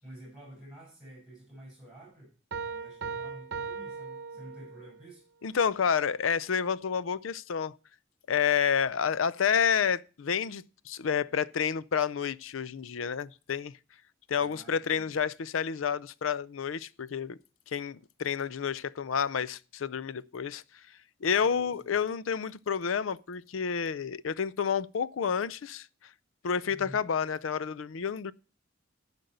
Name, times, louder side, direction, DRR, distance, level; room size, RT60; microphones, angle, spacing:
voice 1, 0.0-2.3 2.7-5.2 14.4-15.1 21.2-21.9 26.7-27.0, right 1 dB, 5° right, 6.8 m, -50 dB
Piano, 2.5-5.0, right 5 dB, 60° right, 0.9 m, -38 dB
voice 2, 5.4-7.8 8.3-13.7 14.3-17.4 17.7-20.6 21.2-25.9 26.4-28.3, left 7 dB, 80° left, 0.5 m, -29 dB
12.0 x 5.3 x 7.8 m
head